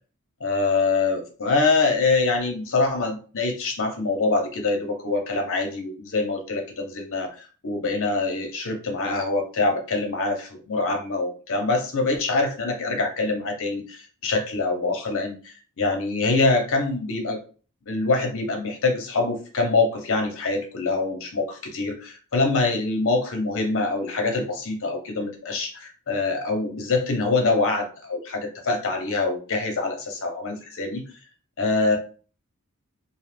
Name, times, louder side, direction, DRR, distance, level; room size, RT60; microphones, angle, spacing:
voice 1, 0.4-17.4 17.9-31.0 31.6-32.0, left 3 dB, 65° left, 3 dB, 0.8 m, -25 dB
2.6 x 2.4 x 3.3 m, 0.38 s
head